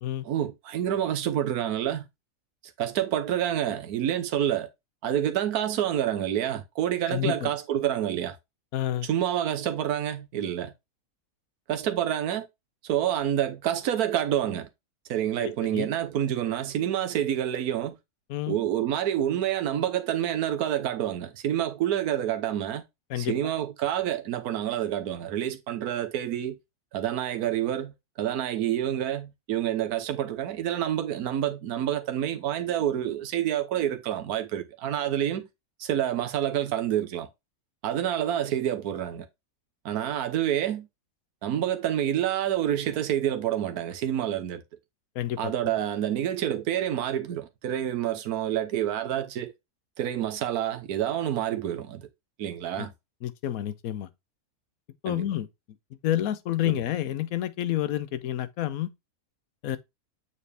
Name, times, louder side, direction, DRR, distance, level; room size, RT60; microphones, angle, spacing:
voice 1, 0.2-2.1 2.8-4.7 5.0-8.4 9.0-10.7 11.7-12.5 12.8-14.7 15.1-18.0 18.5-22.8 23.2-26.6 26.9-35.5 35.8-37.3 37.8-39.3 39.8-40.9 41.4-44.6 45.4-49.5 50.0-52.1 52.4-52.9 55.1-55.2 56.6-56.8, right 11 dB, 75° right, 1.4 m, -28 dB
voice 2, 7.1-7.5 8.7-9.1 15.4-15.9 18.3-18.6 23.1-23.3 45.1-45.5 52.8-52.9 53.2-54.1 55.0-55.5 56.0-58.9 59.6-59.8, left 12 dB, 70° left, 1.1 m, -29 dB
6.8 x 4.3 x 3.3 m
omnidirectional pair, 1.6 m